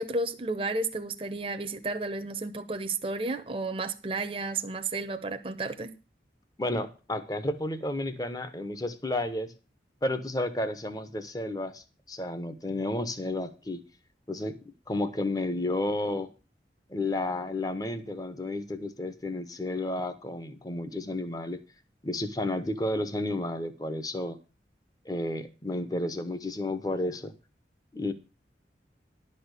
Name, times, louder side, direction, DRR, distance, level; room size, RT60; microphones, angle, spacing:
voice 1, 0.0-5.9, right 3 dB, 30° right, 0.8 m, -32 dB
voice 2, 6.6-9.5 10.0-13.8 14.3-14.6 14.9-16.3 16.9-21.6 22.0-24.4 25.1-27.3 27.9-28.1, left 1 dB, 20° left, 0.9 m, -32 dB
11.5 x 4.3 x 8.1 m
head